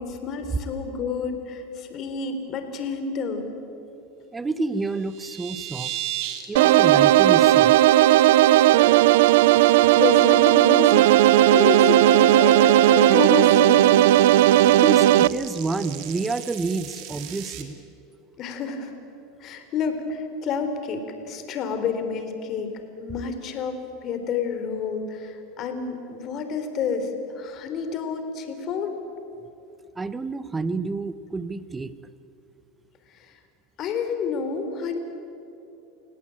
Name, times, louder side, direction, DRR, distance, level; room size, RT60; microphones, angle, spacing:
voice 1, 0.0-3.5 9.7-14.0 18.4-18.9 19.4-22.7 23.0-28.9 33.1-33.3 33.8-35.0, left 5 dB, 45° left, 7 dB, 3.8 m, -29 dB
voice 2, 4.3-5.9 6.5-7.8 14.6-17.8 30.0-31.9, right 3 dB, 15° right, 14 dB, 1.1 m, -29 dB
sound 1, 4.8-6.4 6.8-7.0 7.4-7.5 7.8-8.1 8.4-8.9 9.3-17.6, right 12 dB, 55° right, 3.0 m, -37 dB
sound 2, 6.6-15.3, right 13 dB, 75° right, 0.6 m, -16 dB
29.5 x 17.5 x 8.9 m, 2.8 s
supercardioid pair, 120°, 0 cm